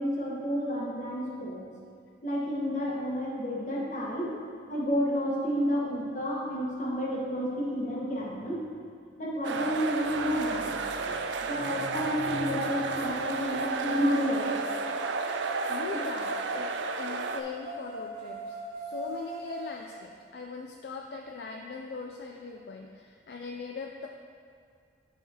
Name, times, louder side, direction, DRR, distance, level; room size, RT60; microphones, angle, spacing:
voice 1, 0.0-1.7 2.2-4.4 4.7-8.6 9.2-10.7 11.0-14.7, equal, 45° left, -4 dB, 1.2 m, -30 dB
sound 1, 9.4-17.4, right 4 dB, 80° right, 0.4 m, -32 dB
sound 2, 14.0-20.0, equal, 40° right, 1.4 m, -42 dB
voice 2, 15.7-24.1, left 4 dB, 60° left, 2 dB, 0.4 m, -40 dB
12.0 x 4.1 x 2.8 m, 2.3 s
head